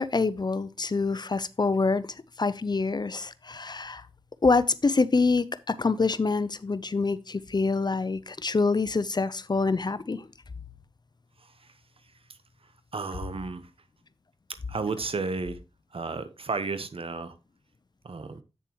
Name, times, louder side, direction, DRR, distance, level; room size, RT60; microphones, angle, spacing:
voice 1, 0.0-2.1 2.4-4.0 4.4-10.3, left 4 dB, 45° left, 0.6 m, -26 dB
voice 2, 11.4-11.7 12.9-13.7 14.5-15.6 15.9-17.3 18.0-18.4, right 4 dB, 65° right, 1.0 m, -33 dB
8.4 x 6.9 x 3.0 m
cardioid pair, 50°, 10 cm